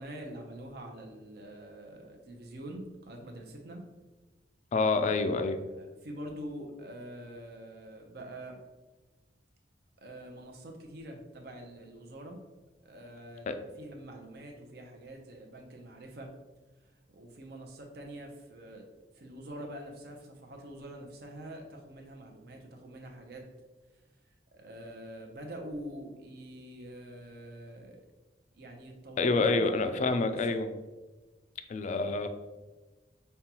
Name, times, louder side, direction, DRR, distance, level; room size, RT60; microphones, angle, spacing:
voice 1, 0.0-3.8 5.7-8.6 10.0-12.4 12.8-13.5 13.8-16.4 17.1-18.9 19.2-23.5 24.5-28.0 28.5-30.4, right 1 dB, 65° right, 2 dB, 0.7 m, -45 dB
voice 2, 4.7-5.6 13.5-13.6 29.2-30.7 31.7-32.3, left 3 dB, 40° left, 8 dB, 0.3 m, -27 dB
5.3 x 2.3 x 2.9 m, 1.2 s
head